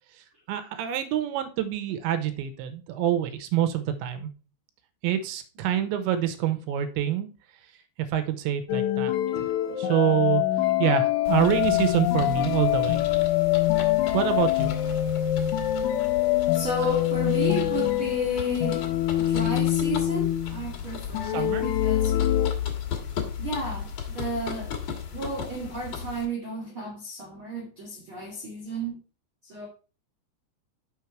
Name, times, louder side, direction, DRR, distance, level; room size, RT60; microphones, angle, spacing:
voice 1, 0.5-4.3 5.0-7.3 8.0-9.5 9.8-10.4 10.8-13.0 14.1-14.7 21.2-21.6, right 10 dB, 85° right, 2.9 m, -26 dB
voice 2, 5.6-5.9 9.6-9.9 16.5-18.9 19.1-22.1 23.4-24.7 25.1-29.0 29.4-29.7, right 2 dB, 60° right, 1.3 m, -33 dB
sound 1, 8.7-20.7 21.1-22.5, left 14 dB, 75° left, 2.8 m, -25 dB
sound 2, 11.2-26.2, left 8 dB, 60° left, 2.1 m, -34 dB
6.6 x 5.9 x 4.5 m
omnidirectional pair, 5.3 m